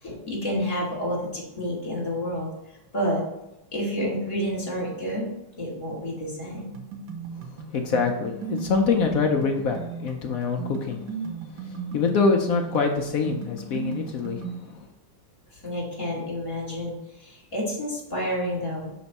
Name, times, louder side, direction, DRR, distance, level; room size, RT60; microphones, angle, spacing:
voice 1, 0.0-3.2 3.7-5.3 5.6-6.7 15.5-18.9, equal, 20° left, -5 dB, 2.3 m, -29 dB
sound 1, 6.6-14.6, right 5 dB, 80° right, 1.7 m, -36 dB
voice 2, 7.7-11.0 11.6-14.9, left 4 dB, 70° left, 3 dB, 0.8 m, -25 dB
5.9 x 4.4 x 4.1 m, 0.89 s
omnidirectional pair, 2.2 m